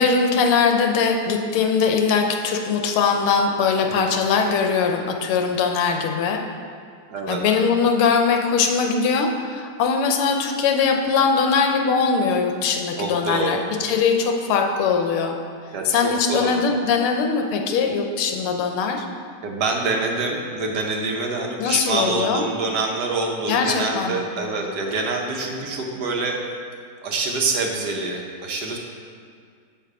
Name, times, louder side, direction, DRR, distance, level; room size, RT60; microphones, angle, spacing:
voice 1, 0.0-6.4 7.3-15.4 15.9-19.0 21.6-22.4 23.5-24.3, left 5 dB, 85° left, 3 dB, 1.6 m, -21 dB
voice 2, 7.1-7.6 13.0-13.7 15.7-16.6 19.4-26.4 27.0-28.8, right 3 dB, 60° right, 1 dB, 1.3 m, -26 dB
8.1 x 5.8 x 4.8 m, 2.1 s
omnidirectional pair, 2.3 m